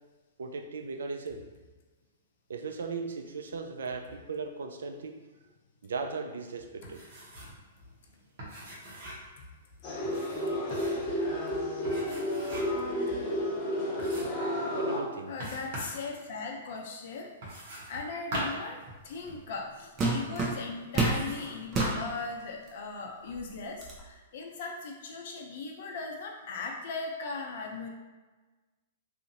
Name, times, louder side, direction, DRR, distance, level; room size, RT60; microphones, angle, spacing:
voice 1, 0.4-1.5 2.5-5.2 5.8-7.0 10.4-10.8 11.8-12.1 14.7-15.4, right 4 dB, 75° right, 5 dB, 0.3 m, -38 dB
sound 1, 6.8-7.6 7.9-8.0 8.4-9.3 10.0-11.1 11.8-12.9 13.3-13.4 14.0-14.5 15.4-16.0 17.4-19.4 20.2-20.3 21.0-21.5 21.8-22.2, right 1 dB, 55° right, 1.0 m, -40 dB
sound 2, 9.8-15.0, equal, 30° left, 1.2 m, -31 dB
voice 2, 15.3-17.3 17.9-18.8 19.0-27.9, left 4 dB, 55° left, 1 dB, 0.5 m, -38 dB
sound 3, 19.3-19.5 20.0-21.2 21.7-22.0 22.7-22.8 23.3-24.0, right 3 dB, 25° right, 0.6 m, -29 dB
2.5 x 2.4 x 2.8 m, 1.3 s
hypercardioid pair, 115°, 0 cm